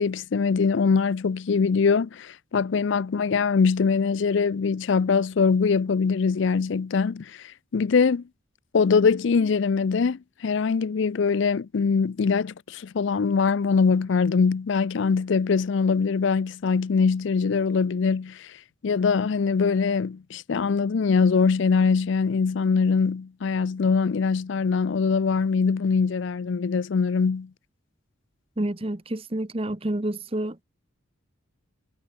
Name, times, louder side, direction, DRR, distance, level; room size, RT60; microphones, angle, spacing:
voice 1, 0.0-7.4 7.7-8.2 8.7-18.5 18.8-27.5, left 5 dB, 60° left, 0.4 m, -23 dB
voice 2, 28.6-30.6, right 1 dB, 25° right, 1.0 m, -29 dB
head